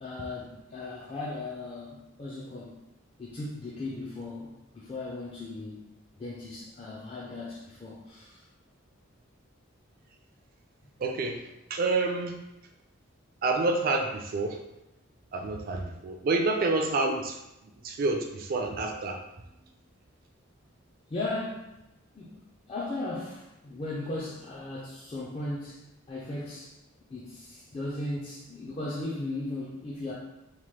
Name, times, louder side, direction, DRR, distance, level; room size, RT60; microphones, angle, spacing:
voice 1, 0.0-2.8 3.2-5.9 6.2-8.4 21.1-21.8 22.1-22.4 22.7-26.8 27.1-30.1, left 2 dB, 30° left, -6 dB, 0.4 m, -37 dB
voice 2, 11.0-11.4 11.7-12.3 13.4-14.6 15.3-19.2, right 3 dB, 45° right, 3 dB, 0.3 m, -28 dB
2.9 x 2.1 x 3.1 m, 0.91 s
head